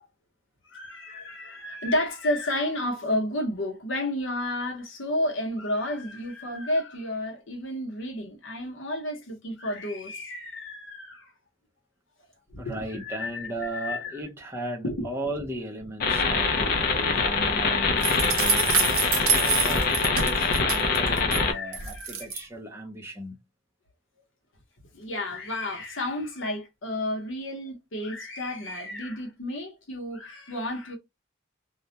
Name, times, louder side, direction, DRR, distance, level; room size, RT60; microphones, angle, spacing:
voice 1, 0.7-11.3 12.5-14.2 14.8-15.1 16.1-16.5 21.4-22.3 24.9-31.0, left 1 dB, 65° left, 0.8 m, -31 dB
voice 2, 12.6-23.4, right 1 dB, 10° right, 0.6 m, -36 dB
sound 1, 16.0-21.5, left 4 dB, 45° left, 0.4 m, -24 dB
sound 2, 18.0-21.4 21.7-22.4, right 7 dB, 75° right, 0.6 m, -27 dB
2.3 x 2.1 x 2.7 m
head